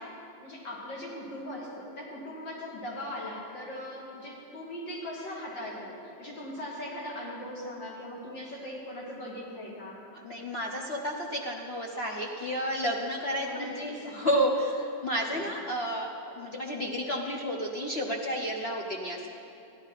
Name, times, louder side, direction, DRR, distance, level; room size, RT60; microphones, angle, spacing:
voice 1, 0.0-10.0 13.4-14.3 15.1-15.5, left 1 dB, 70° left, -4 dB, 3.5 m, -40 dB
voice 2, 10.2-19.3, equal, 40° left, -1 dB, 0.9 m, -31 dB
16.0 x 11.5 x 5.7 m, 2.6 s
omnidirectional pair, 2.1 m